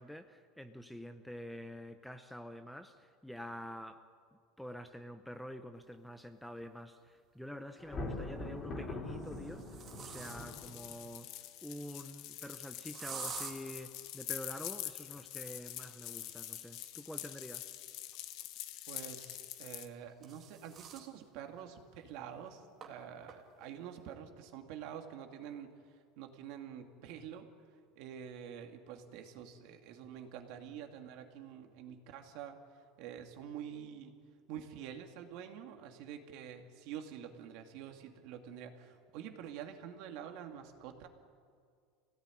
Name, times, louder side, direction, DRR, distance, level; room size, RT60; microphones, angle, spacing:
voice 1, 0.0-4.0 4.6-11.3 11.6-17.7, equal, ahead, 0.7 m, -47 dB
sound 1, 6.6-6.7 8.1-8.5 9.1-10.7 12.9-13.5 16.1-18.8 19.8-21.1 21.6-21.7 22.0-22.1 22.8-22.9 23.3-23.7, right 7 dB, 25° right, 2.6 m, -49 dB
Thunder, 7.8-11.1, left 2 dB, 20° left, 3.7 m, -42 dB
sound 2, 10.2-19.9, left 14 dB, 45° left, 1.3 m, -45 dB
voice 2, 18.9-27.5 28.0-34.1 34.5-41.1, right 9 dB, 50° right, 2.5 m, -47 dB
28.0 x 17.5 x 10.0 m
cardioid pair, 175°, 0 cm